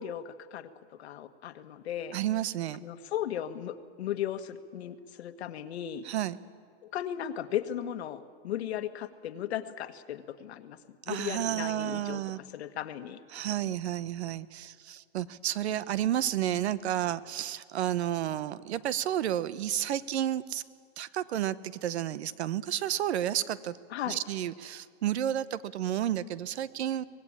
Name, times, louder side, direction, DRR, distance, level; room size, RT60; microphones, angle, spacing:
voice 1, 0.0-2.2 2.8-6.0 6.8-10.8 11.1-12.2 12.5-13.2 23.9-24.2, left 10 dB, 75° left, 10 dB, 1.5 m, -36 dB
voice 2, 2.1-2.8 6.0-6.4 11.1-12.4 13.3-20.6 21.0-21.6 21.8-23.8 24.1-27.0, right 11 dB, 85° right, 17 dB, 1.0 m, -31 dB
24.5 x 19.0 x 8.8 m, 2.1 s
supercardioid pair, 165°, 32 cm